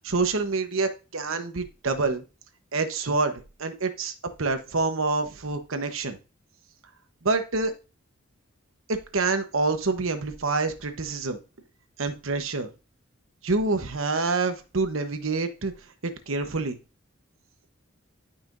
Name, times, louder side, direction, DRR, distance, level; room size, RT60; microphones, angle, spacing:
voice 1, 0.0-2.2 2.7-4.1 4.4-6.2 7.2-7.7 8.9-11.4 12.0-12.7 13.4-15.7 16.0-16.8, right 3 dB, 75° right, 8 dB, 1.1 m, -27 dB
12.0 x 5.7 x 2.6 m, 0.31 s
head